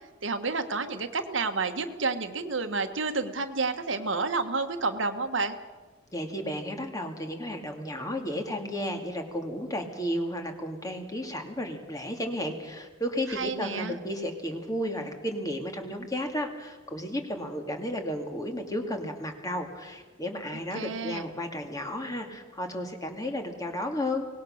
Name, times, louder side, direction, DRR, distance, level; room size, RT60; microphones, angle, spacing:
voice 1, 0.2-5.6 13.4-13.9 20.7-21.2, right 4 dB, 70° right, 7 dB, 1.5 m, -30 dB
voice 2, 6.1-24.3, left 1 dB, 20° left, 4 dB, 2.4 m, -33 dB
24.0 x 19.5 x 6.6 m, 1.3 s
head